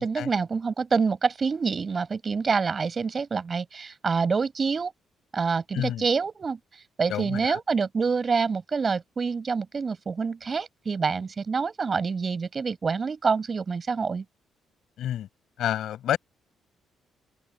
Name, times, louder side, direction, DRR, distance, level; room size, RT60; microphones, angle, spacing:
voice 1, 0.0-4.9 5.3-6.6 7.0-14.2, right 5 dB, 35° right, 7.9 m, -26 dB
voice 2, 5.7-6.0 7.1-7.6 15.0-15.3 15.6-16.2, left 11 dB, 75° left, 7.4 m, -29 dB
cardioid pair, 90°, 0 cm